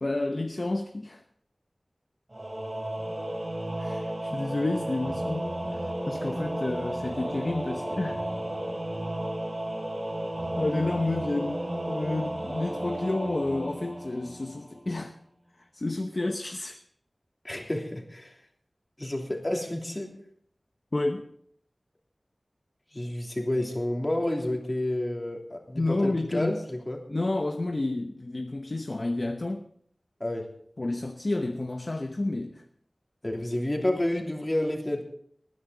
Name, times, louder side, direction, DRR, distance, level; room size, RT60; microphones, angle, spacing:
voice 1, 0.0-1.2 3.8-8.2 10.6-11.6 11.9-15.1 15.7-16.8 20.9-21.3 25.7-26.6 27.1-29.7 30.8-32.6, left 2 dB, 50° left, 0.9 m, -30 dB
Singing / Musical instrument, 2.3-14.8, right 1 dB, 40° right, 2.8 m, -33 dB
voice 2, 17.4-18.3 19.0-20.1 22.9-27.0 30.2-30.5 33.2-35.0, left 1 dB, 30° left, 2.9 m, -30 dB
19.5 x 10.0 x 4.0 m
wide cardioid pair, 65°, 0 cm